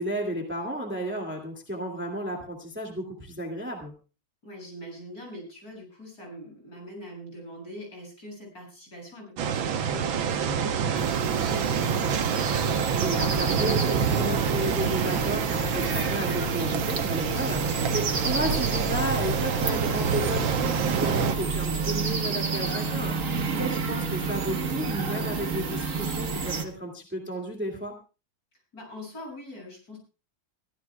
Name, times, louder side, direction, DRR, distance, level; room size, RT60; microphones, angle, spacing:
voice 1, 0.0-3.9 12.8-27.9, equal, 5° right, 2 dB, 2.1 m, -33 dB
voice 2, 4.4-12.0 17.6-18.0 23.5-23.8 28.7-30.0, equal, 45° left, -1 dB, 8.5 m, -43 dB
Ocean Surf Along the Coast of Maine, 9.4-21.3, right 7 dB, 75° right, 1.8 m, -27 dB
sound 1, 11.0-26.6, right 4 dB, 45° right, 1.6 m, -30 dB
23.5 x 15.0 x 2.3 m, 0.32 s
omnidirectional pair, 2.2 m